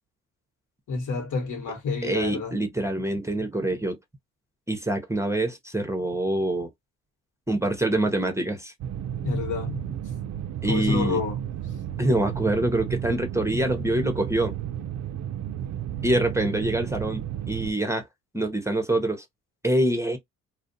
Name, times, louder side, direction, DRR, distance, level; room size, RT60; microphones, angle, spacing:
voice 1, 0.9-2.5 9.2-9.9 10.7-11.4, left 4 dB, 65° left, 1.1 m, -28 dB
voice 2, 2.0-4.0 4.7-6.7 7.5-8.7 10.6-11.2 12.0-14.5 16.0-18.1 18.3-19.2 19.6-20.2, right 1 dB, 10° right, 0.7 m, -25 dB
sound 1, 8.8-17.7, right 10 dB, 60° right, 0.4 m, -33 dB
2.4 x 2.1 x 2.6 m
cardioid pair, 70°, 32 cm